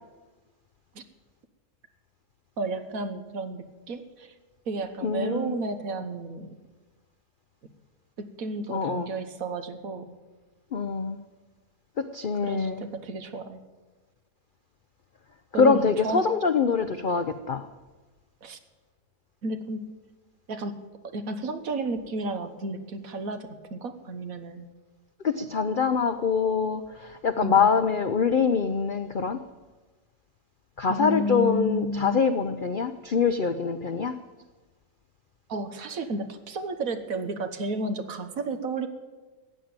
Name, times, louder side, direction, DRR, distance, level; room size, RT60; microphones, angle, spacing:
voice 1, 2.6-4.3 4.7-6.5 8.2-10.2 12.4-13.6 15.5-16.4 18.4-18.6 19.4-19.8 20.5-20.8 21.1-24.7 27.4-27.7 30.9-32.2 35.5-38.9, right 2 dB, 60° right, 8 dB, 1.5 m, -32 dB
voice 2, 5.0-5.6 8.7-9.1 10.7-11.2 12.1-12.8 15.6-17.6 25.2-26.8 27.2-29.4 30.8-34.1, left 5 dB, 75° left, 10 dB, 0.4 m, -24 dB
15.5 x 9.0 x 8.8 m, 1.3 s
omnidirectional pair, 1.7 m